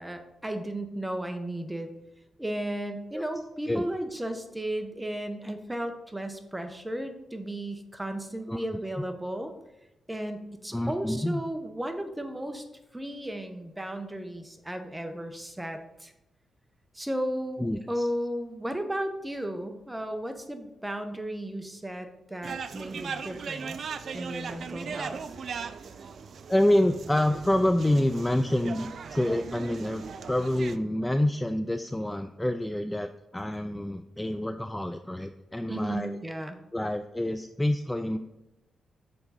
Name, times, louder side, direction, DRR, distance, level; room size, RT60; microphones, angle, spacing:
voice 1, 0.0-1.9 2.4-9.5 10.1-12.6 12.9-16.1 16.9-23.9 24.1-25.2 35.7-36.6, right 1 dB, 10° right, 7 dB, 0.9 m, -34 dB
voice 2, 10.7-11.4 17.6-18.1 26.5-36.2 36.7-38.2, left 1 dB, 10° left, 8 dB, 0.3 m, -27 dB
sound 1, 22.4-30.8, right 6 dB, 60° right, 0.4 m, -38 dB
7.0 x 3.8 x 5.6 m, 0.94 s
cardioid pair, 85°, 0 cm